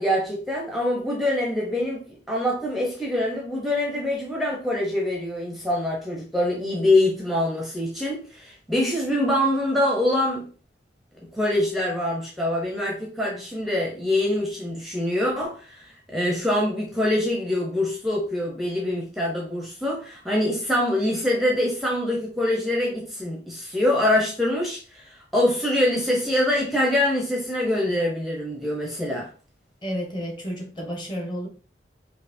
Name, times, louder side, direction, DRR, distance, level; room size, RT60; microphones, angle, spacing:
voice 1, 0.0-10.4 11.3-29.3, left 1 dB, ahead, 0.6 m, -24 dB
voice 2, 29.8-31.5, equal, 25° left, 1.0 m, -31 dB
4.6 x 2.8 x 2.6 m
head